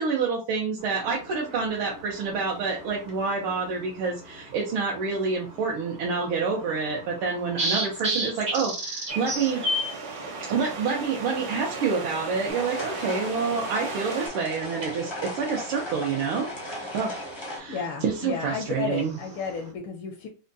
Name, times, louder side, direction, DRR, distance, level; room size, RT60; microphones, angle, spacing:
voice 1, 0.0-9.6 10.5-19.2, right 5 dB, 85° right, -2 dB, 1.7 m, -28 dB
sound 1, 0.8-19.7, right 1 dB, 50° right, 0.6 m, -37 dB
sound 2, 9.1-14.3, right 4 dB, 70° right, 1.7 m, -36 dB
sound 3, 12.5-17.6, left 1 dB, 35° left, 0.4 m, -37 dB
voice 2, 17.7-20.3, left 6 dB, 80° left, 1 dB, 1.6 m, -32 dB
4.9 x 2.2 x 2.6 m, 0.32 s
omnidirectional pair, 2.3 m